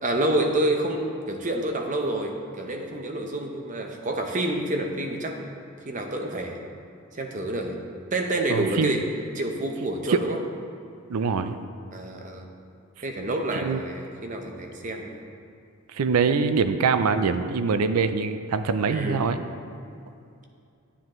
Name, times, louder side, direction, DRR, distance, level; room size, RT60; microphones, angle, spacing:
voice 1, 0.0-5.4 5.8-6.6 7.1-7.8 8.1-9.1 9.3-10.4 11.9-12.5 13.0-15.2 18.9-19.5, right 1 dB, 35° right, 3 dB, 0.8 m, -28 dB
voice 2, 8.5-9.0 10.1-10.2 11.1-11.6 13.5-13.8 15.9-19.4, right 5 dB, 85° right, 10 dB, 0.4 m, -24 dB
9.9 x 9.3 x 3.1 m, 2.5 s
head